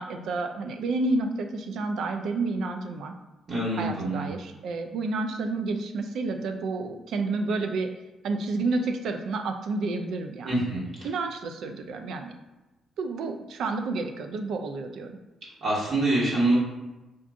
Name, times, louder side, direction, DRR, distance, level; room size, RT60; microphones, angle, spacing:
voice 1, 0.0-3.1 3.8-7.9 8.2-10.5 11.0-12.3 13.0-15.2, right 3 dB, 70° right, 6 dB, 0.4 m, -30 dB
voice 2, 3.5-4.3 10.4-11.1 15.6-16.6, right 2 dB, 55° right, -7 dB, 1.4 m, -25 dB
3.8 x 2.5 x 3.5 m, 1.1 s
cardioid pair, 90°, 0 cm